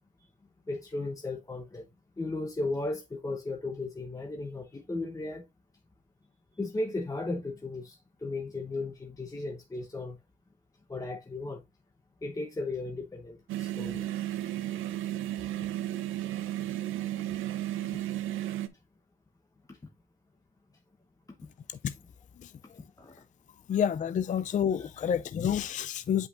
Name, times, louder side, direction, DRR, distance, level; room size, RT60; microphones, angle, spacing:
voice 1, 0.7-1.9 2.2-5.4 6.6-10.2 10.9-11.6 12.2-14.1 17.8-18.3 19.7-19.8 23.0-23.1, left 2 dB, 15° left, 0.9 m, -36 dB
sound 1, 13.5-18.7, right 13 dB, 85° right, 0.8 m, -33 dB
voice 2, 23.7-26.3, left 8 dB, 40° left, 0.4 m, -29 dB
8.1 x 5.4 x 2.5 m
cardioid pair, 90°, 20 cm